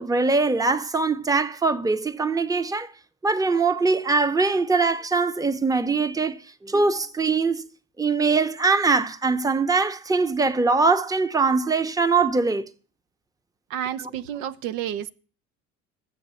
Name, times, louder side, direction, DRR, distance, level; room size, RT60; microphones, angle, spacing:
voice 1, 0.0-2.9 3.2-7.7 8.0-12.7 14.0-14.1, right 4 dB, 10° right, 0.7 m, -22 dB
voice 2, 13.7-15.1, right 10 dB, 80° right, 0.8 m, -30 dB
14.0 x 7.5 x 6.9 m
supercardioid pair, 80°, 40 cm